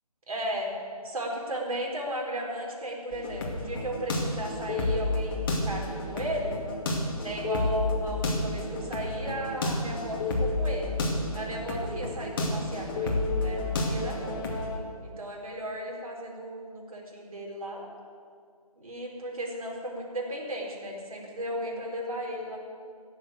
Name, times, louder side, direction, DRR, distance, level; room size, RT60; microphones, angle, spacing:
voice 1, 0.3-0.7 1.0-6.6 7.2-11.0 11.3-14.5 15.0-17.9 18.8-22.6, equal, 65° right, -1 dB, 4.2 m, -35 dB
sound 1, 3.1-14.8, left 2 dB, 35° left, 2.3 m, -30 dB
17.0 x 7.3 x 9.1 m, 2.2 s
figure-of-eight pair, 155°, 20 cm